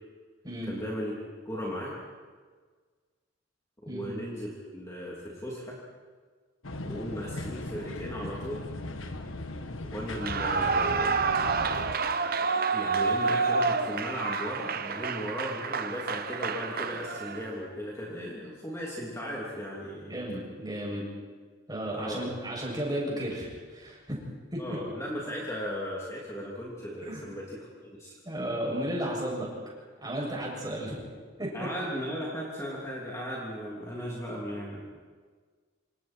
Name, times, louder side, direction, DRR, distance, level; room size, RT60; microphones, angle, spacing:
voice 1, 0.6-1.1 1.4-1.9 3.8-5.8 6.8-8.7 9.9-11.1 12.7-20.1 21.9-22.3 24.6-28.1 31.5-34.8, equal, 15° left, -5 dB, 3.2 m, -36 dB
sound 1, 6.6-12.0, left 2 dB, 85° left, 1.5 m, -38 dB
Clapping / Cheering / Applause, 10.1-17.5, right 4 dB, 45° right, 0.9 m, -29 dB
voice 2, 20.0-21.0 21.7-24.2 24.5-24.8 27.1-27.2 28.2-29.5 30.0-31.1 31.4-31.5, right 1 dB, 20° right, -3 dB, 7.8 m, -33 dB
27.0 x 27.0 x 4.6 m, 1.5 s
head